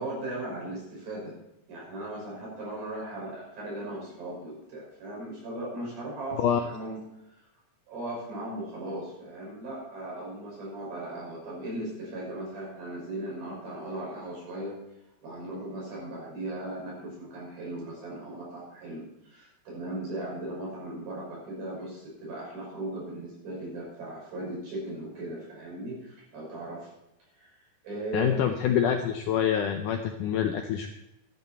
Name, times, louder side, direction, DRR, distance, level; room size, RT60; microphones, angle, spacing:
voice 1, 0.0-1.3 1.7-7.0 7.9-14.7 15.2-26.9 27.4-27.5 27.8-28.5, right 1 dB, 70° right, -4 dB, 7.7 m, -37 dB
voice 2, 6.3-6.7 28.1-30.9, left 9 dB, 80° left, 5 dB, 1.9 m, -26 dB
13.0 x 11.0 x 4.3 m, 0.87 s
omnidirectional pair, 4.4 m